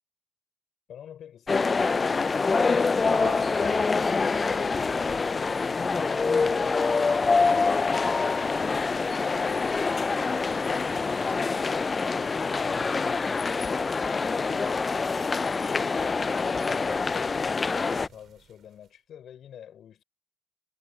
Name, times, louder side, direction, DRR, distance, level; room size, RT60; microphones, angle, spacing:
voice 1, 0.9-6.6 7.1-8.8 9.1-9.8 10.5-14.8 15.1-20.0, left 9 dB, 65° left, 5.6 m, -45 dB
sound 1, 1.5-18.1, left 4 dB, 30° left, 0.3 m, -25 dB
sound 2, 1.9-18.9, right 8 dB, 65° right, 2.2 m, -50 dB
cardioid pair, 90°, 0 cm